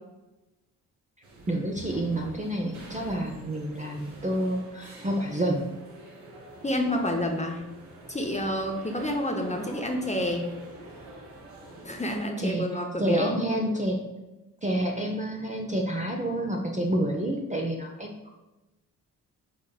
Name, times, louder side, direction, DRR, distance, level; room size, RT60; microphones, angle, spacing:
sound 1, 1.2-12.2, right 2 dB, 75° right, 1.2 m, -46 dB
voice 1, 1.5-5.7 12.4-12.6 13.0-14.0 14.6-18.3, right 1 dB, 20° right, 1 dB, 0.6 m, -28 dB
voice 2, 6.6-7.6 8.1-10.5 11.8-13.4, left 1 dB, 15° left, 2 dB, 0.8 m, -29 dB
5.1 x 3.7 x 2.3 m, 1.0 s
supercardioid pair, 40°, 40 cm